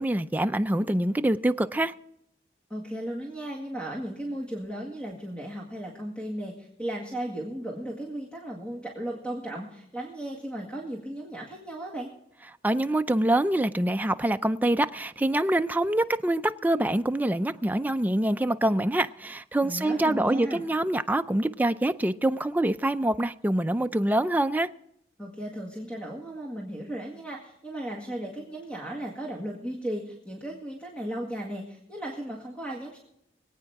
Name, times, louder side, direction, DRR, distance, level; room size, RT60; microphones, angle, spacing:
voice 1, 0.0-1.9 12.6-24.7, right 1 dB, 10° right, 0.4 m, -25 dB
voice 2, 2.7-12.1 19.6-20.6 25.2-33.0, right 1 dB, 5° left, 1.9 m, -35 dB
24.5 x 8.9 x 3.5 m
head